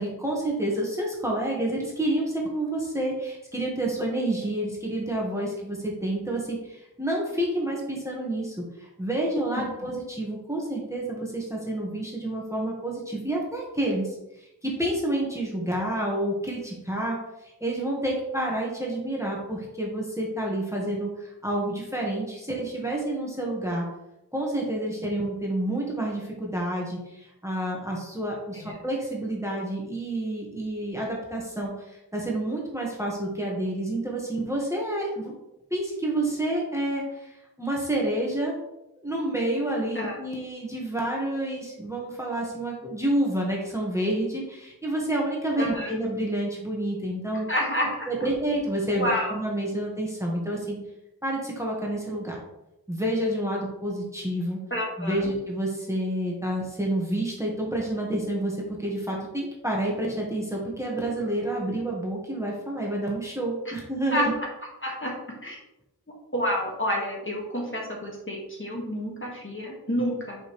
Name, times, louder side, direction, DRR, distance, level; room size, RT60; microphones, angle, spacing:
voice 1, 0.0-14.1 14.4-23.8 24.3-35.3 35.7-38.6 39.0-47.5 48.1-50.8 51.2-52.4 52.9-54.6 55.0-64.3, right 1 dB, 5° right, -2 dB, 1.4 m, -29 dB
voice 2, 45.6-45.9 47.5-48.1 48.9-49.3 54.7-55.3 63.6-63.7 64.1-64.5 64.8-65.1 65.4-65.6 66.3-70.4, equal, 30° left, -2 dB, 1.7 m, -29 dB
5.9 x 5.2 x 3.2 m, 0.89 s
wide cardioid pair, 45°, 39 cm